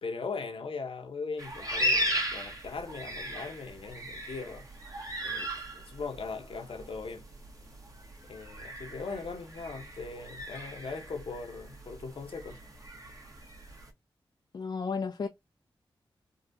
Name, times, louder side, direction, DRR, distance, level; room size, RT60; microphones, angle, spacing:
voice 1, 0.0-4.6 5.2-7.2 8.2-12.6, left 4 dB, 70° left, 1.0 m, -39 dB
sound 1, 1.4-13.9, equal, 35° right, 1.3 m, -37 dB
voice 2, 14.5-15.3, left 5 dB, 50° left, 0.5 m, -33 dB
3.8 x 2.4 x 2.7 m
cardioid pair, 55°, 10 cm